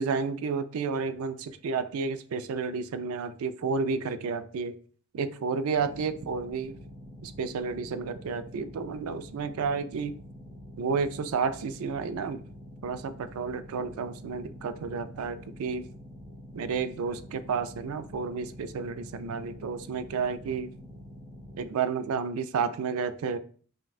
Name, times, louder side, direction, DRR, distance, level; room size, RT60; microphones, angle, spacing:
voice 1, 0.0-4.8 5.1-6.7 7.2-10.1 10.8-12.4 12.8-15.9 16.5-20.7 21.6-23.4, right 5 dB, 85° right, 12 dB, 0.4 m, -31 dB
sound 1, 5.7-21.7, equal, 10° left, 0.8 m, -46 dB
5.7 x 2.2 x 2.4 m, 0.43 s
head